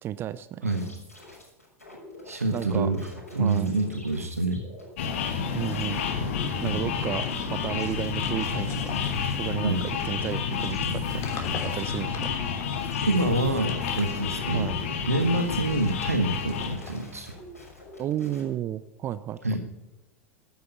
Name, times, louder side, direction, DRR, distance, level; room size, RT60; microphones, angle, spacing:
voice 1, 0.0-0.7 2.5-2.9 3.4-3.8 5.5-6.0 6.6-9.0 9.4-9.8 10.0-11.2 11.6-12.3 14.5-14.8 18.0-19.4, right 11 dB, 30° right, 16 dB, 0.5 m, -32 dB
sound 1, 0.6-5.1 5.6-18.4, left 1 dB, 85° left, 6.4 m, -47 dB
voice 2, 2.3-4.6 6.6-6.8 9.6-9.9 13.0-14.7 15.0-17.3 19.4-19.6, right 2 dB, 80° right, 7 dB, 1.3 m, -27 dB
sound 2, 5.0-16.8, left 6 dB, 60° left, 2.0 m, -30 dB
sound 3, 7.1-9.9 10.7-13.0 13.5-14.6 15.2-18.1, left 5 dB, 40° left, 3.2 m, -44 dB
12.5 x 10.5 x 8.1 m, 0.97 s
figure-of-eight pair, 85°, 8 cm